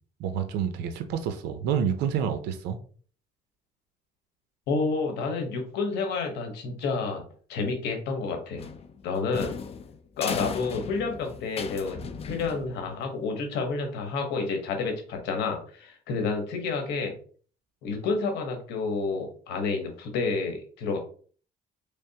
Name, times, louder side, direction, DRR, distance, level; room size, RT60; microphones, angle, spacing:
voice 1, 0.2-2.8, right 8 dB, 85° right, 0.5 m, -28 dB
voice 2, 4.7-7.2 7.5-8.7 9.0-9.5 10.2-12.0 12.3-17.1 17.8-21.0, left 4 dB, 80° left, 1.1 m, -29 dB
sound 1, 8.6-13.0, left 6 dB, 35° left, 0.4 m, -36 dB
3.5 x 3.3 x 2.8 m
cardioid pair, 110°, 17 cm